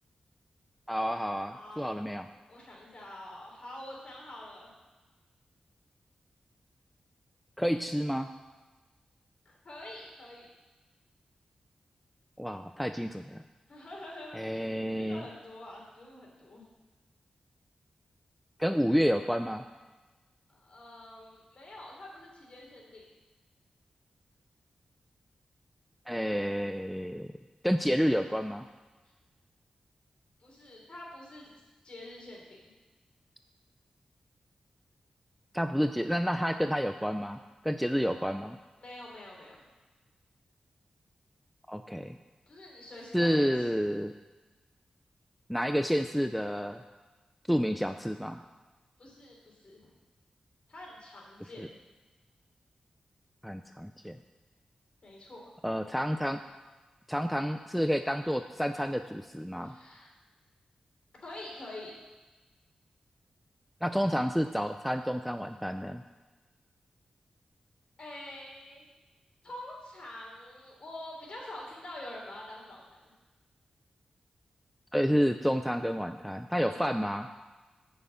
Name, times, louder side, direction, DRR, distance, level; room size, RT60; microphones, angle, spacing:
voice 1, 0.9-2.3 7.6-8.3 12.4-13.4 14.4-15.2 18.6-19.6 26.1-27.3 27.6-28.7 35.5-37.4 37.6-38.6 41.7-42.2 43.1-44.1 45.5-46.8 47.5-48.4 51.6-51.7 53.4-54.2 55.6-56.4 57.1-59.8 63.8-66.0 74.9-77.3, equal, ahead, 7 dB, 0.4 m, -29 dB
voice 2, 1.5-2.0 2.5-4.7 9.5-10.5 13.7-14.6 15.0-16.6 20.5-23.1 30.4-32.7 38.8-39.6 42.5-43.8 49.0-49.8 50.7-51.8 55.0-55.5 59.6-60.2 61.2-61.9 68.0-68.8 69.4-73.1 76.6-77.0, left 1 dB, 50° left, -2 dB, 3.6 m, -46 dB
9.2 x 6.6 x 8.2 m, 1.2 s
wide cardioid pair, 120°, 2 cm